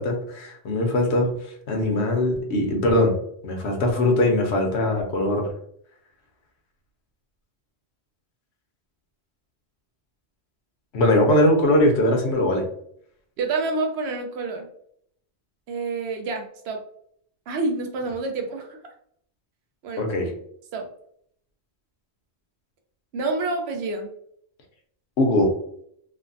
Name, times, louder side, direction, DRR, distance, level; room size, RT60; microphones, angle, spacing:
voice 1, 0.0-3.1 3.4-5.5 10.9-12.7 20.0-20.3 25.2-25.5, left 1 dB, 75° left, 2 dB, 1.0 m, -21 dB
voice 2, 13.4-14.7 15.7-16.8 17.5-18.8 19.8-20.1 20.7-20.9 23.1-24.1, right 3 dB, 75° right, 4 dB, 0.9 m, -28 dB
3.2 x 2.1 x 2.5 m, 0.68 s
omnidirectional pair, 1.1 m